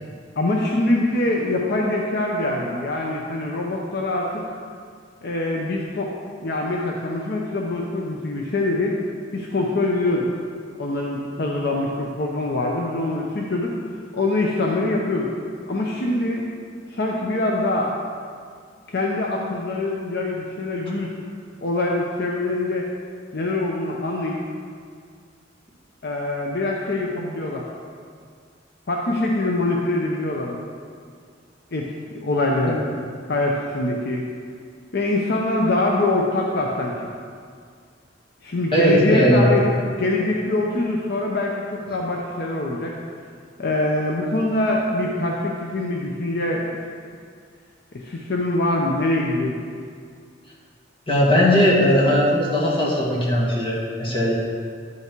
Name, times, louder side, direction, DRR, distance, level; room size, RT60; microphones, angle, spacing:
voice 1, 0.4-4.4 5.2-6.1 6.4-9.0 9.3-10.3 10.8-13.7 14.1-15.3 15.7-16.4 16.9-17.9 18.9-21.1 21.6-22.9 23.3-24.4 26.0-27.6 28.9-30.6 31.7-32.8 33.3-34.3 34.9-37.1 38.4-39.7 40.0-42.9 43.6-46.6 47.9-49.6, left 2 dB, 60° left, -1 dB, 0.8 m, -24 dB
voice 2, 38.7-39.5 51.1-54.3, equal, 30° left, -5 dB, 1.8 m, -18 dB
10.5 x 5.7 x 4.6 m, 2.1 s
head